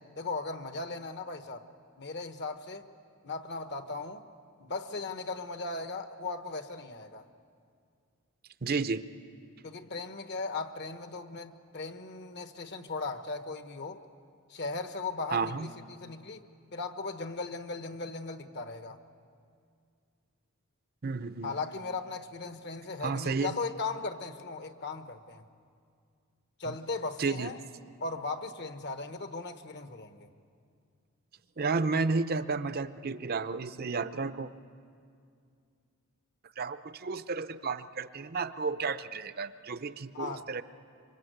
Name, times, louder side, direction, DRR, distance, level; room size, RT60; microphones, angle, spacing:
voice 1, 0.2-1.7 2.0-2.9 3.2-4.2 4.6-7.2 9.6-14.0 14.5-16.4 16.7-19.0 21.4-25.4 26.6-27.6 28.0-30.3 40.1-40.5, left 3 dB, 50° left, 9 dB, 1.2 m, -37 dB
voice 2, 8.6-9.0 15.3-15.7 21.0-21.5 23.0-23.5 26.7-26.8 27.2-27.5 31.6-34.5 36.6-40.6, right 4 dB, 45° right, 12 dB, 0.6 m, -32 dB
26.5 x 24.5 x 8.0 m, 2.3 s
head